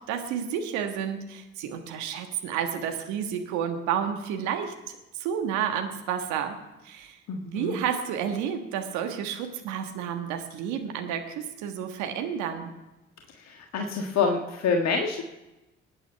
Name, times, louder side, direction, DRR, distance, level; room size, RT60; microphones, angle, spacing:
voice 1, 0.1-6.6 6.8-7.2 7.4-12.7, right 8 dB, 75° right, 5 dB, 1.5 m, -31 dB
voice 2, 7.3-7.8 13.5-15.2, left 5 dB, 60° left, 3 dB, 1.5 m, -27 dB
22.0 x 9.1 x 5.7 m, 1.0 s
hypercardioid pair, 45°, 29 cm